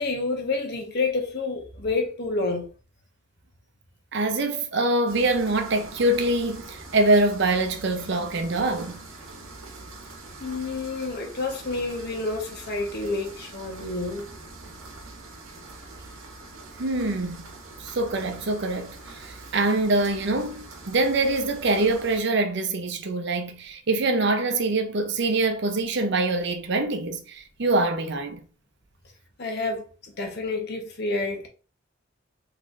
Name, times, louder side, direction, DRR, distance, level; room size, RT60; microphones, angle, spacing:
voice 1, 0.0-2.7 10.4-14.3 29.4-29.8 30.2-31.5, left 3 dB, 55° left, 1.0 m, -29 dB
voice 2, 4.1-9.0 16.8-17.5 17.8-28.4, right 2 dB, 60° right, 0.6 m, -24 dB
sound 1, 5.1-22.2, right 2 dB, 90° right, 0.9 m, -43 dB
4.0 x 3.1 x 2.5 m
head